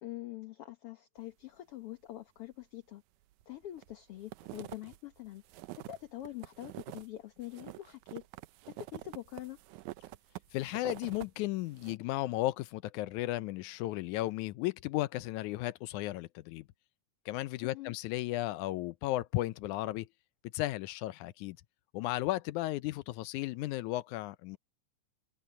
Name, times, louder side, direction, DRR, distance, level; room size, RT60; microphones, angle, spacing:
voice 1, 0.0-3.0 3.5-5.4 5.8-8.2 8.7-9.6 17.6-18.0, left 14 dB, 60° left, 1.8 m, -45 dB
sound 1, 3.3-3.9 4.2-7.1 7.4-11.3 11.6-12.0, right 17 dB, 85° right, 2.1 m, -47 dB
voice 2, 10.5-16.7 17.3-20.1 20.5-21.6 21.9-24.6, left 16 dB, 80° left, 2.1 m, -34 dB
omnidirectional pair, 3.5 m